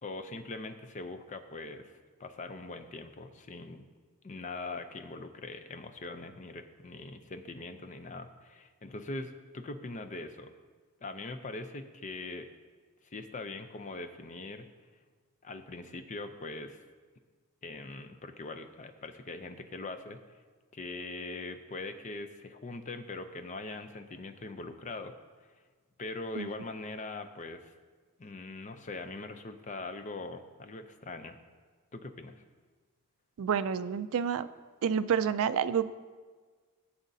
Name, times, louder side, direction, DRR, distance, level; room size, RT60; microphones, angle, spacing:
voice 1, 0.0-3.9 4.2-10.5 11.0-12.5 13.0-14.7 15.4-16.8 17.6-20.4 20.7-25.1 26.0-27.7 28.2-31.4 31.9-32.4, left 3 dB, 35° left, 8 dB, 0.5 m, -42 dB
voice 2, 33.4-34.5 34.8-35.9, right 7 dB, 65° right, 13 dB, 0.3 m, -29 dB
15.0 x 7.2 x 2.7 m, 1.5 s
head